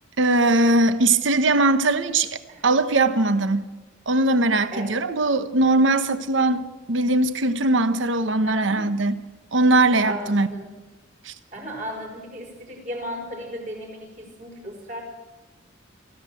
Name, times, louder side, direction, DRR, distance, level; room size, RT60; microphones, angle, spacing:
voice 1, 0.2-3.7 4.1-9.2 9.5-10.5 11.2-11.3, right 2 dB, 70° right, 12 dB, 1.0 m, -20 dB
voice 2, 8.4-8.9 10.0-10.7 11.5-15.0, equal, 40° right, 1 dB, 5.2 m, -35 dB
25.5 x 14.5 x 7.6 m, 1.2 s
head